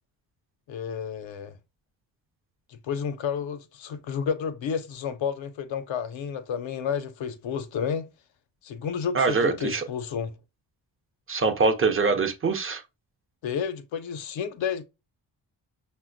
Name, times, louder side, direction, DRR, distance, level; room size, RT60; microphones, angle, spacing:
voice 1, 0.7-1.6 2.7-8.1 8.6-10.3 13.4-14.8, left 7 dB, 65° left, 0.7 m, -31 dB
voice 2, 9.1-9.8 11.3-12.8, right 4 dB, 25° right, 0.6 m, -23 dB
5.5 x 2.2 x 2.5 m
supercardioid pair, 50°, 50 cm